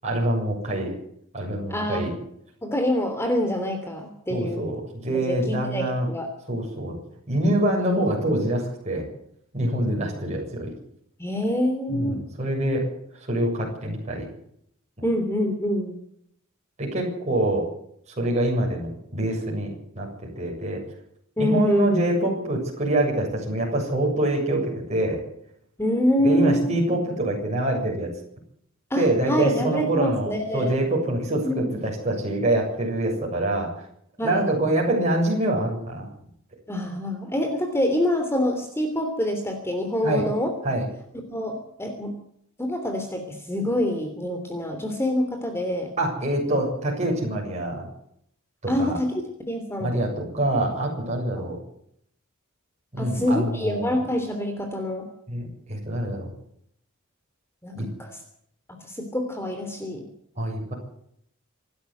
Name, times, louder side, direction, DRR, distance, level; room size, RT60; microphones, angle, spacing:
voice 1, 0.0-1.0 1.3-2.1 4.3-6.1 6.5-7.0 7.3-9.1 9.5-10.7 11.9-12.8 13.3-14.3 16.8-17.7 18.2-20.8 21.4-25.2 26.2-28.1 29.0-33.7 34.2-36.1 40.0-40.3 40.6-40.8 46.0-47.9 48.6-49.0 49.8-51.6 52.9-54.0 55.3-56.3 57.7-57.9 60.4-60.7, right 1 dB, 30° right, -1 dB, 7.4 m, -25 dB
voice 2, 1.7-2.1 2.6-4.7 5.1-6.3 11.2-12.2 15.0-16.0 21.4-22.0 25.8-26.7 28.9-30.8 31.3-31.7 34.2-34.4 36.7-40.5 41.3-42.1 42.6-45.9 48.7-49.1 49.4-50.0 51.3-51.5 53.0-55.0 57.6-58.2 58.8-60.0, left 1 dB, 10° left, 5 dB, 3.2 m, -26 dB
26.5 x 12.5 x 8.1 m, 0.71 s
head